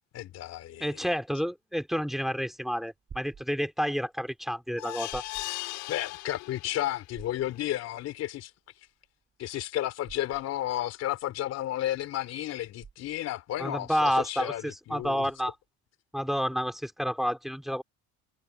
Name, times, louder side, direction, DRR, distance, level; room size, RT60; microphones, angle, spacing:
voice 1, 0.1-1.0 5.9-8.5 9.4-15.3, left 13 dB, 55° left, 3.5 m, -32 dB
voice 2, 0.8-5.2 13.6-15.5 16.1-17.8, equal, ahead, 3.1 m, -30 dB
sound 1, 2.5-15.6, right 6 dB, 30° right, 6.8 m, -54 dB
sound 2, 4.8-7.0 7.5-7.6 7.9-8.0, left 21 dB, 80° left, 6.2 m, -38 dB
cardioid pair, 130°, 29 cm